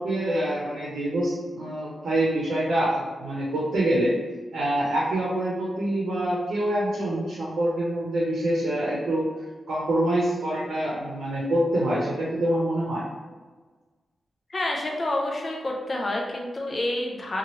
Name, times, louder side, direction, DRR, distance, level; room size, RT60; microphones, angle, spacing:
voice 1, 0.0-4.2 4.5-9.3 9.7-13.0, right 1 dB, 75° right, -6 dB, 0.7 m, -25 dB
voice 2, 14.5-17.4, left 1 dB, 30° left, 0 dB, 0.5 m, -28 dB
2.9 x 2.4 x 3.0 m, 1.4 s
wide cardioid pair, 170°, 0 cm